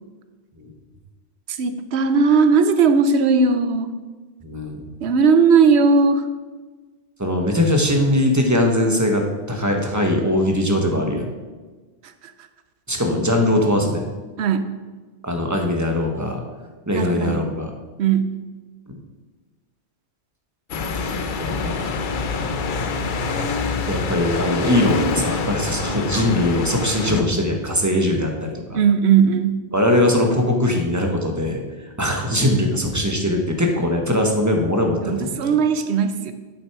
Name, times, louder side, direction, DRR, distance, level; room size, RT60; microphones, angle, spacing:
voice 1, 1.5-3.9 5.0-6.3 14.4-14.7 16.9-17.4 18.0-18.4 28.7-29.6 35.0-36.3, right 5 dB, 80° right, 10 dB, 0.9 m, -17 dB
voice 2, 4.4-4.8 7.2-11.2 12.9-14.0 15.2-16.4 16.9-17.7 18.9-19.0 20.9-22.0 23.9-28.8 29.7-31.6 32.0-35.3, left 1 dB, 15° right, 2 dB, 1.1 m, -21 dB
sound 1, 20.7-27.2, left 4 dB, 55° left, 0.8 m, -25 dB
8.8 x 6.4 x 4.7 m, 1.3 s
omnidirectional pair, 1.1 m